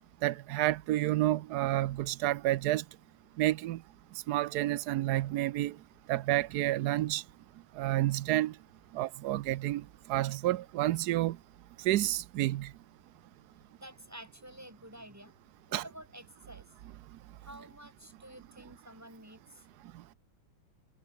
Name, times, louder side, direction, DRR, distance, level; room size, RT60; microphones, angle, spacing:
voice 1, 0.2-2.8 3.4-3.8 4.3-5.7 6.1-7.2 7.8-8.5 8.9-9.8 10.1-11.4 11.8-12.7 15.7-15.8, right 15 dB, 90° right, 0.8 m, -29 dB
voice 2, 13.8-15.3 15.7-16.7 17.4-19.7, equal, 5° right, 7.7 m, -50 dB
omnidirectional pair, 2.4 m